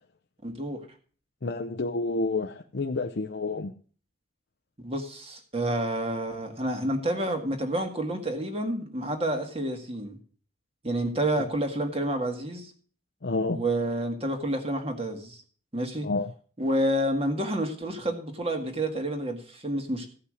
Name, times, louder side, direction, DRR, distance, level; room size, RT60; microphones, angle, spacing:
voice 1, 0.4-0.8 4.8-10.2 10.8-12.7 13.5-15.4 15.7-16.1 16.6-20.1, right 1 dB, 30° right, 4 dB, 1.8 m, -29 dB
voice 2, 1.4-3.7 11.3-11.5 13.2-13.6 16.0-16.3, left 3 dB, 60° left, 3 dB, 0.7 m, -29 dB
15.0 x 5.7 x 6.3 m, 0.42 s
head